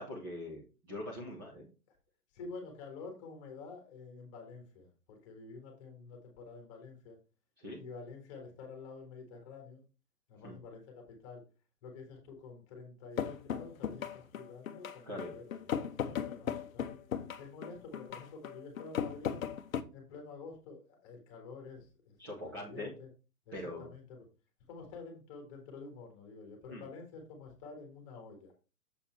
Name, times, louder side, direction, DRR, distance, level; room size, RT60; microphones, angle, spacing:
voice 1, 0.0-1.7 7.6-7.8 10.4-10.6 15.1-15.3 22.2-22.9 23.5-23.9 26.7-26.8, left 1 dB, 15° right, -3 dB, 0.8 m, -42 dB
voice 2, 2.3-7.2 7.8-9.8 10.3-11.4 11.8-17.0 17.4-19.4 19.9-23.1 23.5-24.2 24.7-28.5, left 4 dB, 20° left, 2 dB, 1.6 m, -49 dB
sound 1, 13.2-19.8, left 8 dB, 60° left, 0.8 m, -37 dB
7.1 x 4.2 x 4.4 m, 0.33 s
hypercardioid pair, 165°, 46 cm